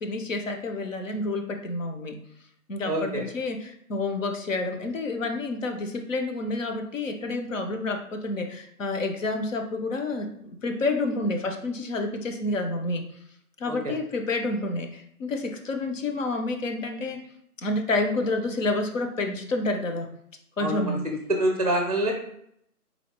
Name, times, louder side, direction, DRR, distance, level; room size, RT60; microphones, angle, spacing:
voice 1, 0.0-2.2 2.7-13.0 13.6-17.2 17.6-20.1 20.6-21.1, left 2 dB, 55° left, 5 dB, 0.7 m, -29 dB
voice 2, 2.9-3.2 13.7-13.9 20.6-20.9 21.3-22.1, right 1 dB, 25° right, 2 dB, 0.6 m, -26 dB
4.1 x 3.1 x 3.3 m, 0.71 s
hypercardioid pair, 165°, 45 cm